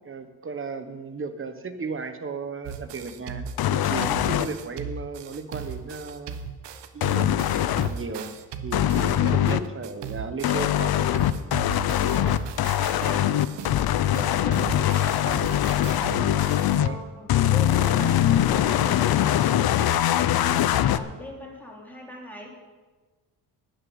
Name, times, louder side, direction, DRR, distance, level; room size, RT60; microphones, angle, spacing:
voice 1, 0.0-6.4 6.9-7.3 7.8-8.3 8.6-11.1 14.9-15.0 16.8-17.0, right 4 dB, 30° right, 9 dB, 1.2 m, -35 dB
sound 1, 2.6-10.8 11.1-16.7, right 6 dB, 80° right, 1.1 m, -37 dB
sound 2, 3.6-4.5 7.0-7.9 8.7-9.6 10.4-16.9 17.3-21.0, left 12 dB, 60° left, 0.7 m, -22 dB
voice 2, 11.9-12.4 12.9-13.4 14.0-15.3 16.4-22.6, equal, 5° left, -2 dB, 3.4 m, -40 dB
11.5 x 6.8 x 9.4 m, 1.3 s
cardioid pair, 110°, 41 cm